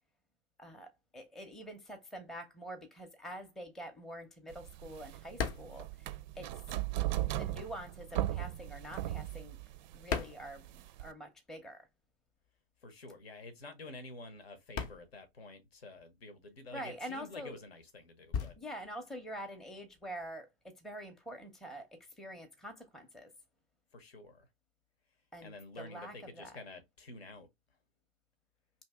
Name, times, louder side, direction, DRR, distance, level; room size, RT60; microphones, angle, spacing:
voice 1, 0.6-6.8 7.2-9.6 9.9-11.9 16.7-17.6 18.6-23.3 25.3-26.6, equal, ahead, 0.6 m, -46 dB
sound 1, 3.5-6.9 7.2-11.3 11.6-20.3, left 6 dB, 40° left, 0.7 m, -42 dB
sound 2, 4.5-11.1, right 14 dB, 50° right, 0.4 m, -38 dB
voice 2, 12.8-18.6 23.9-24.5 25.4-27.5, left 2 dB, 80° left, 1.0 m, -49 dB
2.8 x 2.6 x 3.4 m
figure-of-eight pair, 105°, 30 cm